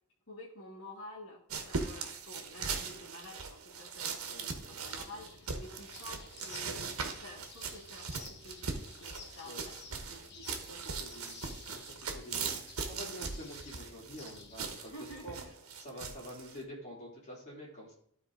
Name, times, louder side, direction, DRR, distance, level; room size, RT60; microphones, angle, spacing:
voice 1, 0.3-10.8 14.7-15.5, left 1 dB, 65° left, -4 dB, 1.6 m, -51 dB
sound 1, 1.5-16.6, right 5 dB, 75° right, 1.2 m, -40 dB
sound 2, 4.7-14.9, left 4 dB, 50° left, 1.0 m, -53 dB
voice 2, 10.5-14.9 15.2-15.4 15.8-17.9, equal, 30° left, -4 dB, 3.3 m, -47 dB
12.5 x 4.3 x 4.0 m, 0.65 s
head